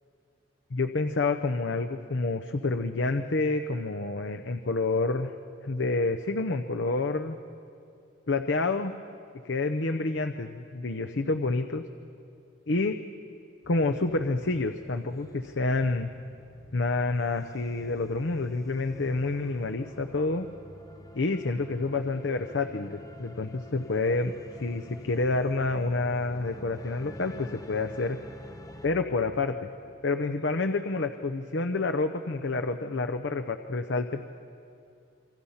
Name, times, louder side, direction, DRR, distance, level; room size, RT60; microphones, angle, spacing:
voice 1, 0.7-5.3 5.6-7.4 8.3-8.9 9.4-11.8 12.7-13.0 13.7-16.1 16.7-20.5 21.1-24.3 24.6-28.2 28.8-29.7 30.0-34.3, left 3 dB, 75° left, 7 dB, 0.8 m, -28 dB
sound 1, 13.6-28.9, left 1 dB, 20° left, 0.9 m, -48 dB
28.0 x 24.0 x 5.7 m, 2.6 s
head